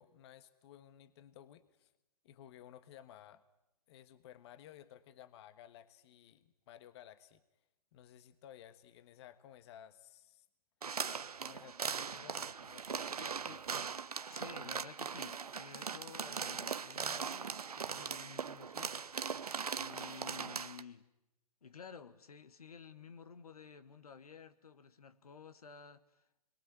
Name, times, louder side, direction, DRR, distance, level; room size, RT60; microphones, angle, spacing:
voice 1, 0.0-1.9 2.2-3.4 3.9-7.4 7.9-10.5 11.4-13.4, left 11 dB, 45° left, 1.4 m, -56 dB
sound 1, 10.8-20.8, right 6 dB, 75° right, 1.1 m, -40 dB
voice 2, 13.2-13.6 14.3-19.1 19.7-21.1 21.6-26.4, left 6 dB, 75° left, 1.6 m, -53 dB
27.5 x 22.5 x 9.4 m
figure-of-eight pair, 120°, 20 cm